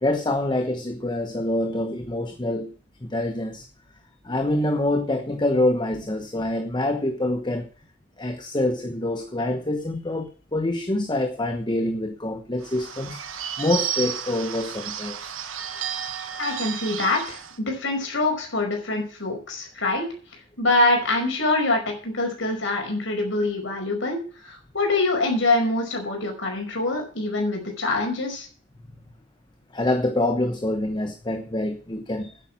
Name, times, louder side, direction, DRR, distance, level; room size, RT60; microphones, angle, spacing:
voice 1, 0.0-2.7 3.0-3.7 4.2-7.7 8.2-15.3 29.7-32.3, left 1 dB, 20° left, 7 dB, 1.0 m, -26 dB
Bird / Bell, 12.6-17.6, right 8 dB, 85° right, 1.5 m, -32 dB
voice 2, 16.4-20.1 20.6-28.5, left 2 dB, 70° left, 2 dB, 5.3 m, -25 dB
10.0 x 9.1 x 7.5 m, 0.40 s
head